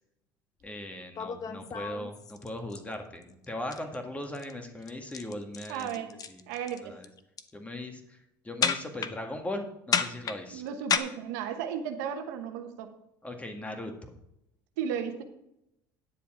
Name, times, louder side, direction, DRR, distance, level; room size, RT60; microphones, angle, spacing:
sound 1, 0.6-0.7 1.1-2.8 3.2-3.4 3.7-3.9 4.2-4.5 4.8-6.8 7.0-7.5 8.6-9.1 9.9-11.0, left 7 dB, 40° left, 0.8 m, -31 dB
voice 1, 0.6-6.4 6.8-7.1 7.5-8.2 8.4-10.6 13.2-14.1, left 1 dB, 15° left, 5 dB, 1.8 m, -39 dB
voice 2, 5.7-6.1 6.5-7.0 10.5-12.9 14.8-15.2, right 8 dB, 85° right, 6 dB, 1.0 m, -34 dB
10.0 x 6.9 x 4.9 m, 0.83 s
supercardioid pair, 90°, 10 cm